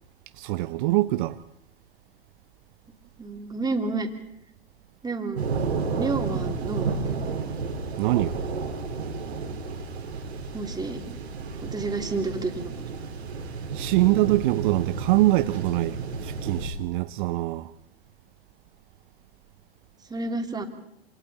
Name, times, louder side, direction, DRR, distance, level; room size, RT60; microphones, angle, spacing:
voice 1, 0.4-1.4 8.0-8.4 13.7-17.7, right 18 dB, 50° right, 0.8 m, -24 dB
voice 2, 3.2-4.1 5.0-5.6 6.0-7.3 10.5-11.0 11.6-12.8 20.1-20.7, right 3 dB, 10° right, 3.1 m, -30 dB
sound 1, 5.3-16.7, right 4 dB, 80° right, 4.0 m, -32 dB
28.0 x 27.5 x 4.3 m
hypercardioid pair, 100°, 32 cm